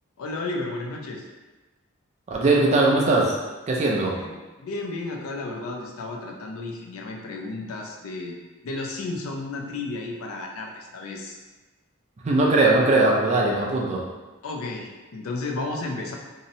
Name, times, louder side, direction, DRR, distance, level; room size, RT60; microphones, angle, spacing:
voice 1, 0.2-1.2 4.0-8.4 8.6-11.4 14.4-16.1, left 2 dB, 75° left, 0 dB, 0.4 m, -33 dB
voice 2, 2.3-3.4 3.7-4.2 12.2-14.0, right 2 dB, 30° right, -2 dB, 0.4 m, -20 dB
2.7 x 2.0 x 2.6 m, 1.2 s
head